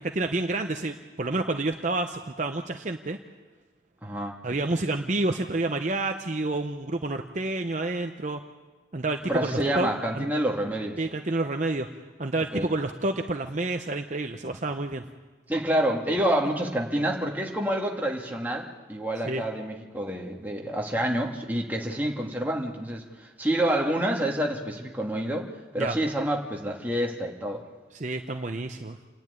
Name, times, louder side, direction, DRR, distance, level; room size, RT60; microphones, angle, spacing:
voice 1, 0.0-3.2 4.4-8.4 8.9-10.3 11.0-11.9 12.2-15.0 19.2-19.4 25.8-26.0 27.9-29.0, right 2 dB, 40° right, 5 dB, 0.8 m, -29 dB
voice 2, 4.0-4.4 9.3-11.0 12.5-12.7 15.5-23.0 23.4-25.5 25.7-27.6, right 1 dB, 10° right, -1 dB, 2.1 m, -28 dB
28.5 x 10.5 x 9.5 m, 1.3 s
head